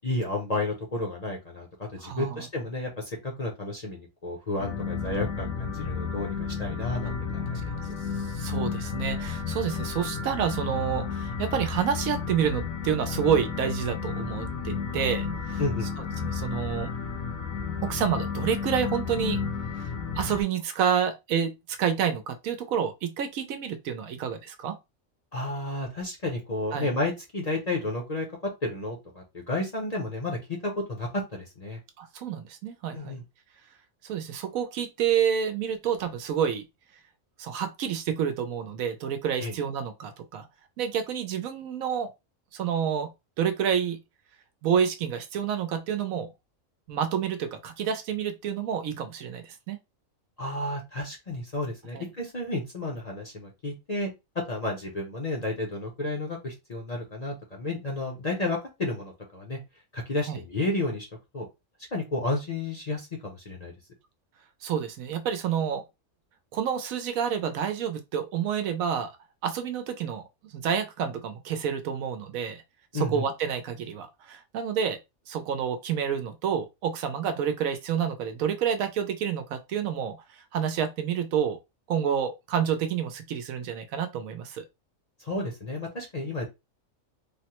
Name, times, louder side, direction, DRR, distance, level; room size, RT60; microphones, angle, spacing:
voice 1, 0.0-7.8 15.6-15.9 25.3-28.3 28.6-31.8 32.9-33.2 39.4-39.5 50.4-59.6 59.9-61.1 61.3-61.5 61.9-63.7 72.9-73.2 85.2-86.5, left 2 dB, 40° left, 0.6 m, -32 dB
voice 2, 2.0-2.5 8.2-15.6 16.2-16.9 17.8-19.4 19.7-19.8 20.2-24.7 26.7-26.9 32.0-33.1 34.0-36.6 37.4-40.5 40.8-42.1 42.5-43.1 43.4-44.0 44.6-46.3 46.9-49.8 51.9-52.1 60.3-60.4 64.6-65.8 66.5-69.1 69.4-70.2 70.5-72.6 72.9-75.0 75.3-80.2 80.5-81.6 81.9-84.6, right 8 dB, 80° right, 1.0 m, -29 dB
sound 1, 4.6-20.4, left 5 dB, 80° left, 1.1 m, -32 dB
3.4 x 2.1 x 2.9 m
omnidirectional pair, 1.4 m